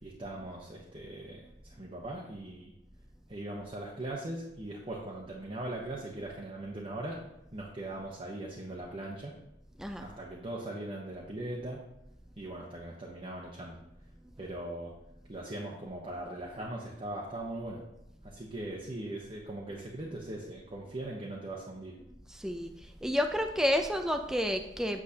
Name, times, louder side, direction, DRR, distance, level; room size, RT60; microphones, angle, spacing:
voice 1, 0.0-2.7 3.3-7.2 7.5-9.3 10.0-11.8 12.4-13.8 14.4-14.9 15.3-17.8 18.2-22.0, right 1 dB, 30° right, -3 dB, 0.9 m, -40 dB
voice 2, 22.4-22.7 23.0-25.0, left 1 dB, 5° right, 5 dB, 0.3 m, -30 dB
8.5 x 6.4 x 2.8 m, 0.87 s
head